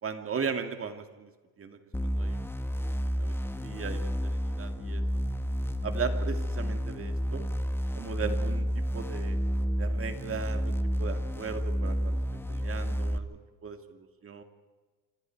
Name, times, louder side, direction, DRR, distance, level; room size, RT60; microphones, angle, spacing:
voice 1, 0.0-1.3 1.6-2.4 2.8-5.0 5.8-7.5 7.9-9.4 9.8-14.4, right 6 dB, 25° right, 6 dB, 2.3 m, -38 dB
sound 1, 1.9-13.2, equal, 5° left, 0.9 m, -30 dB
27.0 x 26.5 x 4.7 m, 1.3 s
cardioid pair, 140°, 49 cm